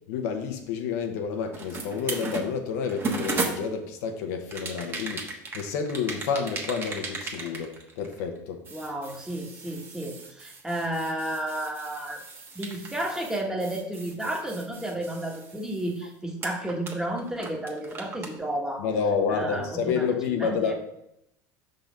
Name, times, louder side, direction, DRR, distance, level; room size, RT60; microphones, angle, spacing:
voice 1, 0.1-8.6 18.8-20.7, left 6 dB, 75° left, 5 dB, 1.0 m, -29 dB
sound 1, 1.5-4.0 4.5-8.4 8.7-16.1 16.4-18.4, right 3 dB, 25° right, 1.2 m, -36 dB
voice 2, 8.7-12.2 12.5-18.9 19.3-20.7, right 1 dB, 5° right, 1 dB, 1.2 m, -32 dB
5.6 x 3.9 x 5.1 m, 0.81 s
supercardioid pair, 120°, 9 cm